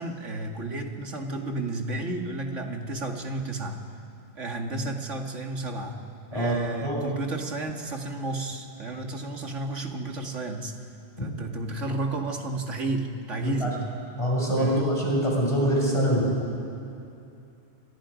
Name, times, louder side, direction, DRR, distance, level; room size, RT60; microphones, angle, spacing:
voice 1, 0.0-3.8 4.3-6.0 6.3-10.8 11.2-13.9 14.6-14.9, right 2 dB, 85° right, 2 dB, 2.5 m, -32 dB
voice 2, 14.2-16.3, equal, 25° left, -3 dB, 6.5 m, -24 dB
29.5 x 27.0 x 5.2 m, 2.7 s
omnidirectional pair, 1.2 m